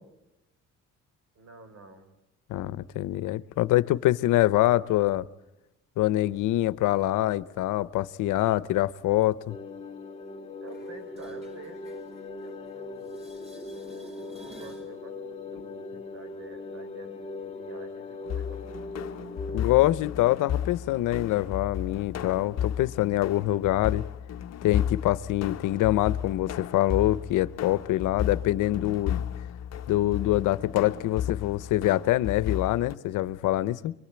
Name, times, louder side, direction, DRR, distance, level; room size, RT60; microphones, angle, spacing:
voice 1, 1.4-2.1 10.6-11.8 12.4-13.2 14.2-18.8, right 3 dB, 55° right, 5.6 m, -49 dB
voice 2, 2.5-5.3 6.0-9.6 19.5-24.0 24.6-29.3 29.9-33.9, left 15 dB, 90° left, 0.8 m, -25 dB
sound 1, 9.5-19.7, left 3 dB, 20° left, 3.0 m, -40 dB
sound 2, 10.7-12.7 13.0-14.9 20.7-20.8, right 2 dB, 20° right, 5.0 m, -51 dB
sound 3, 18.2-33.0, left 9 dB, 60° left, 1.0 m, -34 dB
23.5 x 23.0 x 8.9 m
cardioid pair, 90°, 30 cm